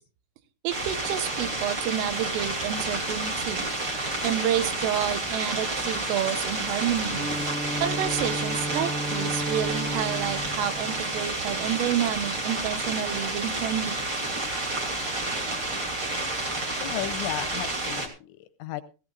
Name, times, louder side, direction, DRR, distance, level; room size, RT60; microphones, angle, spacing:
voice 1, 0.6-3.7 4.2-7.2 7.8-14.0, right 10 dB, 85° right, 10 dB, 3.7 m, -29 dB
sound 1, 0.7-18.1, right 2 dB, 30° right, 2.5 m, -30 dB
Bowed string instrument, 7.0-11.9, equal, 55° right, 5.6 m, -34 dB
voice 2, 16.8-18.8, left 13 dB, 80° left, 10 dB, 2.8 m, -34 dB
18.0 x 15.0 x 2.5 m, 0.35 s
omnidirectional pair, 5.7 m